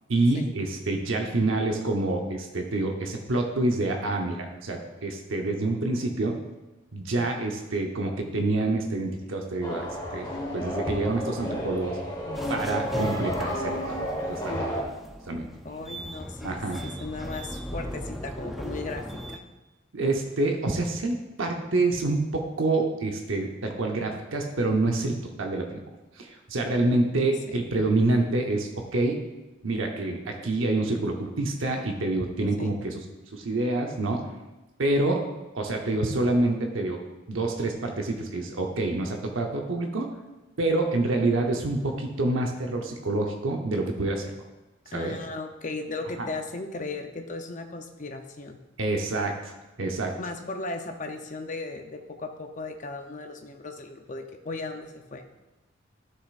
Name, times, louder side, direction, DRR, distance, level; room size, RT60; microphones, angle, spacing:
voice 1, 0.1-6.4 6.9-10.3 10.5-12.0 12.5-14.0 14.3-14.6 15.3-15.5 16.4-16.8 19.9-25.8 26.2-29.2 29.6-33.0 33.3-34.3 34.8-35.2 35.5-37.0 37.3-40.1 40.6-44.3 44.9-45.2 46.2-46.3 48.8-50.1, right 2 dB, 85° right, 2 dB, 0.8 m, -27 dB
sound 1, 9.6-14.8, equal, 20° left, 1.3 m, -31 dB
sound 2, 12.3-19.4, equal, ahead, 0.4 m, -38 dB
voice 2, 15.6-19.4 27.5-27.6 32.6-32.7 41.8-41.9 44.9-48.6 50.2-55.4, left 3 dB, 40° left, 5 dB, 0.7 m, -37 dB
12.0 x 6.6 x 2.5 m, 1.1 s
head